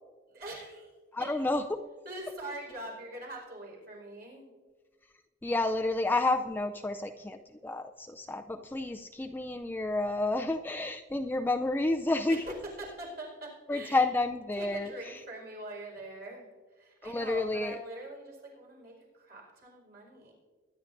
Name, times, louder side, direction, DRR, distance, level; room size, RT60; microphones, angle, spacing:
voice 1, 0.3-0.9 1.2-1.5 2.0-4.5 12.3-14.0 14.5-20.3, right 1 dB, 55° right, -2 dB, 4.7 m, -43 dB
voice 2, 1.1-1.8 5.4-7.4 7.6-12.4 13.7-14.9 17.0-17.7, left 2 dB, 10° left, 5 dB, 0.4 m, -30 dB
22.5 x 10.5 x 2.6 m, 1.4 s
head